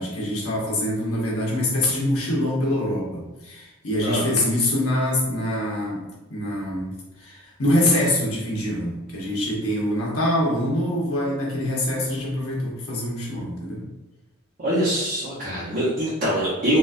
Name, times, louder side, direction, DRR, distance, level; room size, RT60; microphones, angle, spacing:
voice 1, 0.0-6.0 6.3-6.9 7.2-13.8, left 1 dB, 70° left, -4 dB, 1.1 m, -24 dB
voice 2, 14.6-16.8, right 1 dB, 40° right, -10 dB, 0.8 m, -23 dB
4.1 x 2.5 x 2.5 m, 1.0 s
head